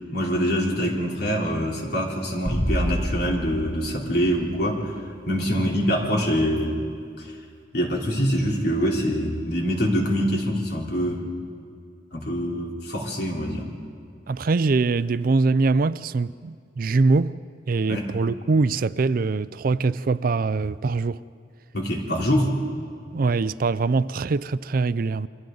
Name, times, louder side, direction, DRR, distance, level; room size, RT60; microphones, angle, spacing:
voice 1, 0.1-6.8 7.2-7.3 7.7-11.3 12.1-13.7 17.9-18.1 21.7-22.5, equal, 60° left, 3.5 m, -25 dB
sound 1, 2.5-4.9, equal, 45° left, 6.2 m, -29 dB
voice 2, 14.3-17.4 17.7-21.2 23.1-25.3, right 3 dB, 50° right, 0.4 m, -23 dB
29.0 x 24.0 x 3.9 m
head